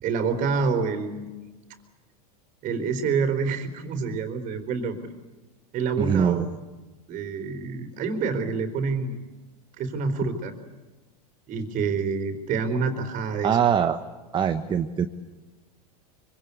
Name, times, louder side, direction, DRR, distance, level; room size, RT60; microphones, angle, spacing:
voice 1, 0.0-1.3 2.6-5.0 5.7-6.4 7.1-9.2 9.8-10.5 11.5-13.6, right 5 dB, 40° right, 5 dB, 3.9 m, -27 dB
voice 2, 6.0-6.6 13.4-14.0 14.3-15.1, right 8 dB, 25° right, 8 dB, 1.3 m, -22 dB
25.0 x 25.0 x 8.4 m, 1.2 s
hypercardioid pair, 115°, 20 cm